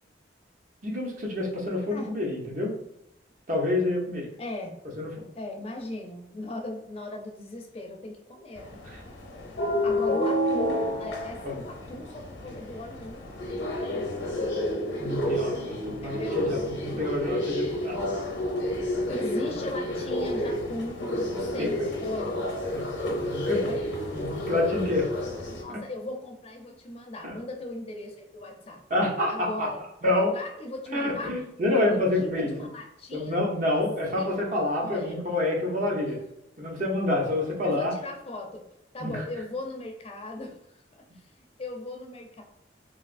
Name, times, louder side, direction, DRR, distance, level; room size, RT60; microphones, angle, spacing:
voice 1, 0.8-2.7 3.5-4.3 5.0-5.3 8.8-9.0 11.4-11.6 15.0-17.9 21.6-21.7 22.7-23.7 24.1-25.1 25.7-25.8 28.9-29.7 30.0-30.3 30.9-32.5 33.1-36.2 36.6-37.9 39.0-39.2, left 2 dB, 45° right, -2 dB, 0.8 m, -28 dB
voice 2, 4.4-4.7 5.3-8.8 9.8-14.5 16.0-16.4 19.1-21.0 21.5-22.5 23.6-23.9 25.5-28.8 29.3-29.8 30.3-31.4 31.6-33.4 34.2-34.4 34.8-35.2 37.6-38.7 38.9-40.6 40.9-41.2 41.6-42.4, left 1 dB, 35° left, 3 dB, 0.5 m, -37 dB
sound 1, 8.6-25.6, left 1 dB, 80° left, 0.7 m, -30 dB
3.3 x 2.6 x 2.5 m, 0.82 s
head